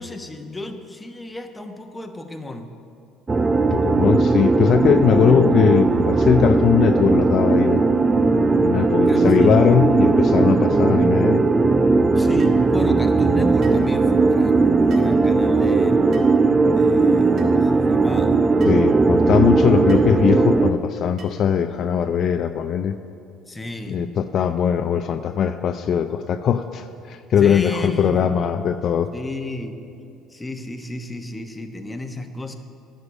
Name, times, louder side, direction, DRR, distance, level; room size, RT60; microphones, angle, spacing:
voice 1, 0.0-2.7 9.1-9.5 12.1-16.3 16.6-18.4 23.5-24.0 27.4-28.3 29.1-29.8 30.3-32.5, left 2 dB, 15° left, 5 dB, 1.0 m, -33 dB
sound 1, 3.3-20.7, right 3 dB, 25° right, 0.5 m, -17 dB
voice 2, 3.7-7.8 8.6-11.4 18.7-23.0 23.9-29.1, left 8 dB, 55° left, 8 dB, 0.4 m, -20 dB
sound 2, 12.4-12.6 13.6-13.9 14.9-15.1 16.1-16.4 17.4-17.5 18.6-18.8 19.9-20.1 21.2-21.5, right 4 dB, 55° right, 1.4 m, -44 dB
9.6 x 6.7 x 8.5 m, 2.6 s
supercardioid pair, 85°, 0 cm